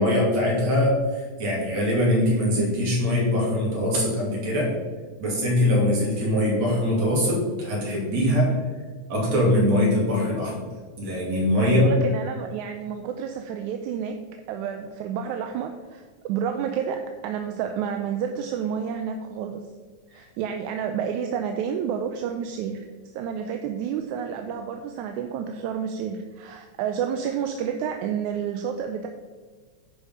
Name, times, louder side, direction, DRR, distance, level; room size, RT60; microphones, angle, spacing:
voice 1, 0.0-4.7 5.2-8.6 9.1-10.7 11.0-11.9, left 1 dB, 60° right, -4 dB, 4.0 m, -22 dB
voice 2, 11.6-14.2 14.5-19.6 20.1-22.8 23.1-29.1, right 8 dB, 85° right, 5 dB, 2.0 m, -30 dB
10.5 x 5.0 x 5.5 m, 1.4 s
omnidirectional pair, 3.4 m